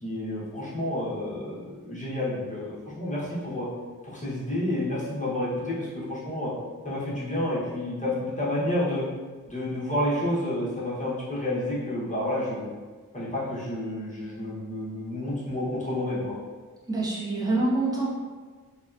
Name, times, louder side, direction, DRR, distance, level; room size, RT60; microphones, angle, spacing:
voice 1, 0.0-3.7 4.0-6.5 6.8-9.0 9.5-12.7 13.1-16.4, left 1 dB, 25° left, -8 dB, 0.9 m, -30 dB
voice 2, 16.9-18.1, right 2 dB, 10° right, -6 dB, 0.6 m, -26 dB
2.8 x 2.1 x 2.4 m, 1.4 s
wide cardioid pair, 95°, 32 cm